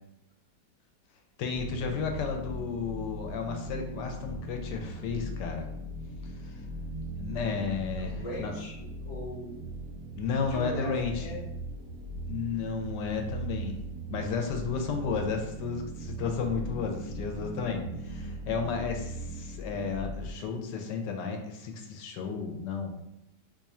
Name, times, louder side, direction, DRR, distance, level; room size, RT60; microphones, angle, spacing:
voice 1, 1.4-5.7 6.4-6.5 7.2-8.5 10.1-11.3 12.3-13.8 14.1-22.9, left 5 dB, 80° left, 4 dB, 1.1 m, -33 dB
sound 1, 1.5-20.3, right 1 dB, 70° right, 0.8 m, -39 dB
voice 2, 8.0-9.6 10.5-11.5 17.3-17.5, left 1 dB, 45° left, -4 dB, 0.5 m, -39 dB
2.9 x 2.4 x 4.1 m, 0.84 s
omnidirectional pair, 1.9 m